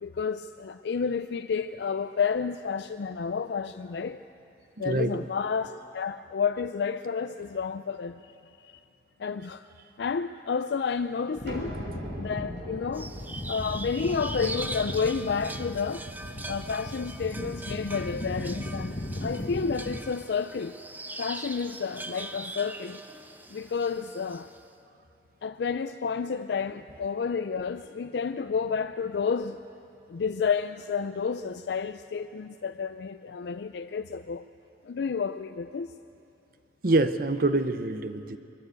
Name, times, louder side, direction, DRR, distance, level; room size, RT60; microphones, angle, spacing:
voice 1, 0.0-4.2 4.8-8.2 8.6-8.7 9.2-9.7 10.0-11.7 12.2-13.1 13.5-16.0 16.5-20.8 21.2-23.0 23.5-24.5 25.4-29.6 30.1-34.4 34.8-35.9, left 5 dB, 75° left, 0.4 m, -30 dB
voice 2, 4.8-5.2 36.8-38.4, right 2 dB, 55° right, 0.8 m, -25 dB
sound 1, 11.4-20.0, left 1 dB, 45° left, 1.2 m, -37 dB
sound 2, 11.5-17.1, right 1 dB, 80° right, 3.6 m, -44 dB
sound 3, 12.9-24.6, right 2 dB, 10° right, 0.6 m, -41 dB
22.5 x 14.5 x 8.2 m
head